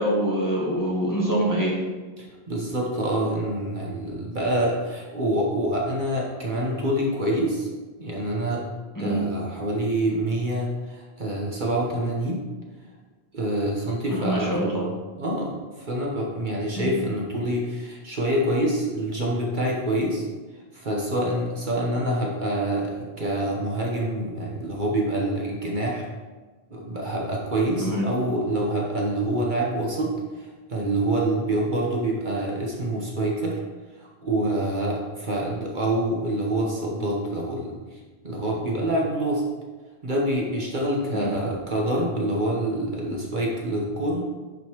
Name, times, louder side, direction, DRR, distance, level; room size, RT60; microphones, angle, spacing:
voice 1, 0.0-1.8 8.9-9.2 14.1-14.8 16.8-16.9 27.8-28.0 41.1-41.3, right 1 dB, 20° left, -5 dB, 1.6 m, -25 dB
voice 2, 2.2-7.7 8.0-8.7 9.0-12.4 13.3-14.8 15.2-20.3 20.7-26.0 26.7-33.6 34.0-38.0 38.2-39.5 40.0-44.2, right 1 dB, 50° right, -2 dB, 1.3 m, -26 dB
10.5 x 5.4 x 3.1 m, 1.3 s
omnidirectional pair, 1.1 m